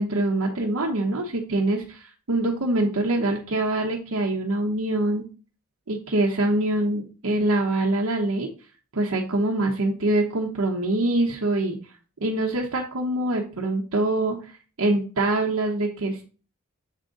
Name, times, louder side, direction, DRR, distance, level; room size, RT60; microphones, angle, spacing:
voice 1, 0.0-5.2 5.9-8.5 8.9-11.8 12.2-14.5 14.8-16.2, right 2 dB, 80° right, -1 dB, 0.9 m, -24 dB
7.4 x 3.7 x 3.9 m, 0.36 s
head